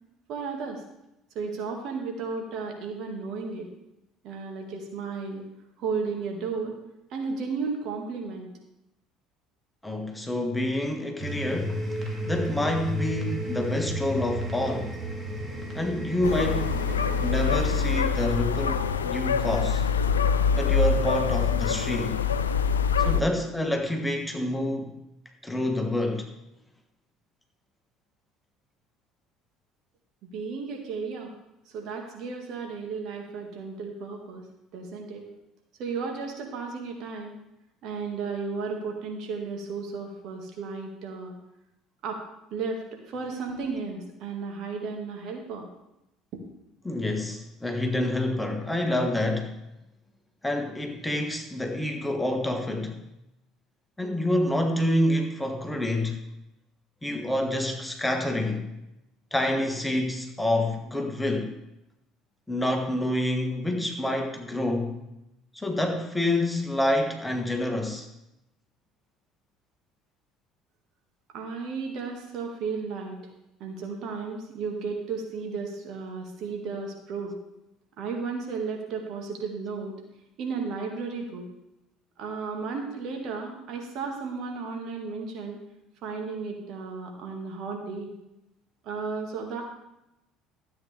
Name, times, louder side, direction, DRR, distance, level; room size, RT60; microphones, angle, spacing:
voice 1, 0.3-0.8 1.4-3.7 4.2-5.4 5.8-6.8 7.1-8.5 30.2-31.3 31.7-34.5 34.7-35.3 35.8-37.3 37.8-41.4 42.0-42.2 42.5-45.7 46.3-46.4 71.3-73.2 73.6-77.4 78.0-79.9 80.4-81.5 82.2-85.6 86.0-88.1 88.8-89.6, right 4 dB, 55° right, 2 dB, 1.8 m, -34 dB
voice 2, 9.8-12.0 12.3-15.0 15.7-16.8 17.2-19.8 20.6-22.2 23.0-25.0 25.4-26.3 46.8-49.6 50.4-53.0 54.0-56.2 57.0-58.8 59.3-61.5 62.5-64.9 65.5-68.1, left 1 dB, 10° left, 3 dB, 1.5 m, -27 dB
sound 1, 11.2-18.0, equal, 25° right, 2.2 m, -33 dB
sound 2, 16.2-23.2, left 6 dB, 85° left, 0.4 m, -25 dB
13.0 x 8.1 x 3.4 m, 0.88 s
figure-of-eight pair, 60°, 0 cm